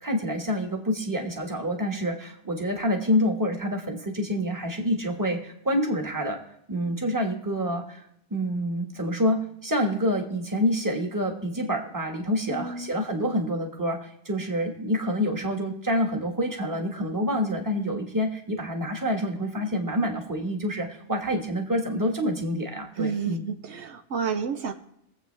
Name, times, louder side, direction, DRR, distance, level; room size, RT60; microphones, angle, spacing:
voice 1, 0.0-6.4 6.7-8.0 8.3-23.5, equal, 15° right, 2 dB, 1.5 m, -27 dB
voice 2, 12.5-12.9 22.9-24.7, right 5 dB, 70° right, 7 dB, 1.1 m, -30 dB
22.0 x 7.9 x 3.4 m, 0.77 s
omnidirectional pair, 1.2 m